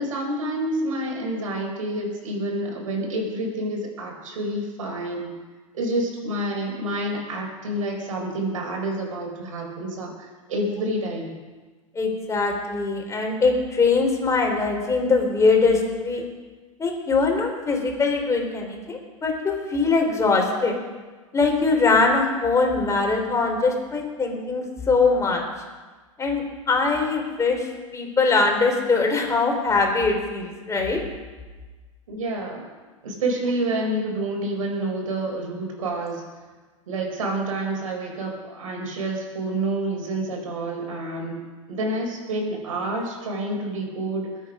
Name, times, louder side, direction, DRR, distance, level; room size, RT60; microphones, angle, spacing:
voice 1, 0.0-5.3 5.7-11.4 32.1-32.7 33.0-36.2 36.9-44.3, right 1 dB, 75° right, 0 dB, 4.9 m, -28 dB
voice 2, 11.9-16.2 16.8-20.7 21.3-25.4 26.2-31.0, left 4 dB, 15° left, 1 dB, 4.0 m, -22 dB
21.5 x 8.6 x 5.1 m, 1.3 s
hypercardioid pair, 100°, 17 cm